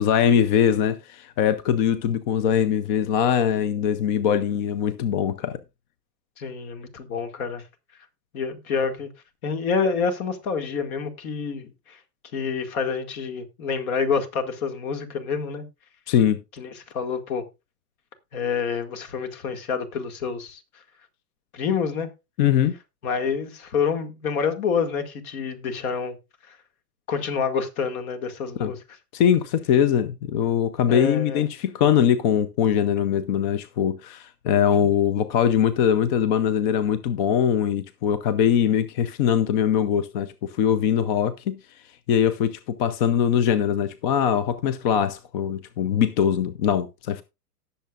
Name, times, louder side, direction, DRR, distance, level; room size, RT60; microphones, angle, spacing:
voice 1, 0.0-5.6 16.1-16.4 22.4-22.7 28.6-28.7 29.1-41.6 42.1-47.2, left 9 dB, 30° left, 0.5 m, -22 dB
voice 2, 6.4-7.6 8.3-9.1 9.4-12.0 12.3-15.7 16.6-17.5 18.3-20.6 21.5-22.1 23.0-26.2 26.5-26.6 27.1-28.8 30.9-31.4, left 5 dB, 55° left, 2.1 m, -27 dB
18.0 x 6.9 x 2.4 m
hypercardioid pair, 125°, 50 cm